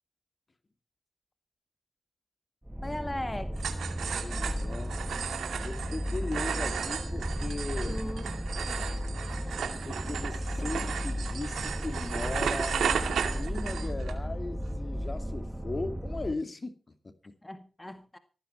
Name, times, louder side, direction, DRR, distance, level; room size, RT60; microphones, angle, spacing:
sound 1, 2.6-16.3, equal, 10° right, 1.9 m, -35 dB
voice 1, 2.8-3.6 7.9-8.9 10.6-10.9 17.4-18.2, left 1 dB, 20° left, 1.9 m, -39 dB
sound 2, 3.6-14.1, right 7 dB, 85° right, 2.3 m, -34 dB
voice 2, 4.2-5.0 5.6-8.0 9.8-17.3, left 3 dB, 40° left, 2.3 m, -38 dB
15.5 x 15.0 x 4.5 m
cardioid pair, 50°, 0 cm